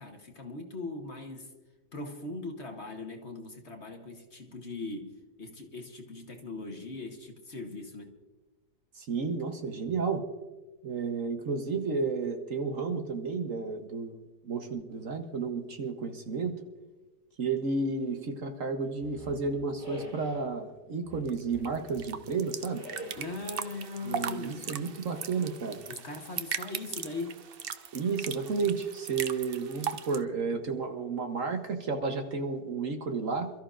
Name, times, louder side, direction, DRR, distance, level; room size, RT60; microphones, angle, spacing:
voice 1, 0.0-1.5 1.9-8.2 23.1-24.7 25.9-27.4 30.5-30.6, left 3 dB, 45° left, 4 dB, 1.3 m, -40 dB
voice 2, 8.9-10.2 10.8-14.2 14.4-16.6 17.4-22.8 24.0-25.8 27.9-33.5, right 4 dB, 55° right, 5 dB, 1.3 m, -32 dB
sound 1, 19.0-20.5 21.0-22.2 22.7-23.5, equal, 35° right, 4.4 m, -45 dB
sound 2, 21.3-30.2, right 8 dB, 80° right, 0.5 m, -39 dB
27.5 x 13.5 x 2.5 m, 1.2 s
omnidirectional pair, 1.8 m